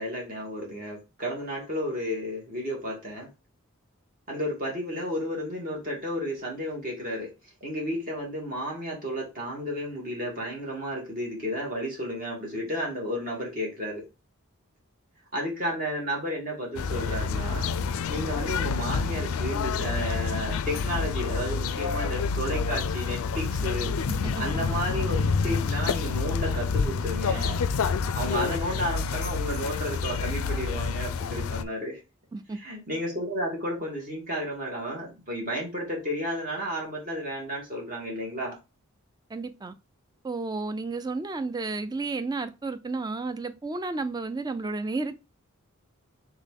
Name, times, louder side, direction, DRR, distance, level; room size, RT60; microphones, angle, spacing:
voice 1, 0.0-3.3 4.3-7.3 7.6-14.0 15.3-17.7 18.1-23.9 24.4-27.6 28.1-32.0 32.5-38.5, equal, 40° right, 1.5 m, -32 dB
sound 1, 16.8-31.6, left 5 dB, 80° left, 0.4 m, -28 dB
voice 2, 24.1-24.4 32.3-32.6 39.3-39.7 40.2-45.2, right 3 dB, 20° right, 0.4 m, -32 dB
4.0 x 3.6 x 3.6 m
head